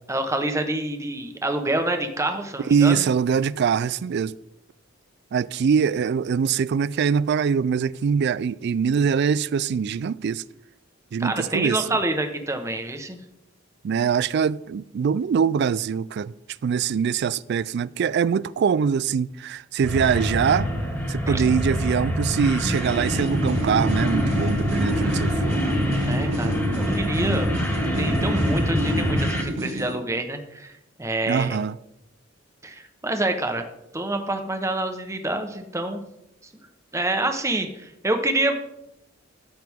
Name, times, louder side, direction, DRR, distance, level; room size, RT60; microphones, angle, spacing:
voice 1, 0.1-3.0 11.2-13.2 21.3-21.4 26.0-27.5 28.0-31.6 32.6-33.6 33.9-36.0 36.9-38.5, right 2 dB, 15° right, 1.0 m, -27 dB
voice 2, 2.6-4.3 5.3-10.4 11.1-11.8 13.8-16.3 16.6-20.7 21.1-25.6 31.3-31.8, right 6 dB, 55° right, 0.3 m, -23 dB
sound 1, 19.8-29.4, equal, 10° left, 1.9 m, -26 dB
sound 2, 22.5-30.0, equal, 75° right, 2.8 m, -27 dB
14.0 x 7.8 x 3.6 m
head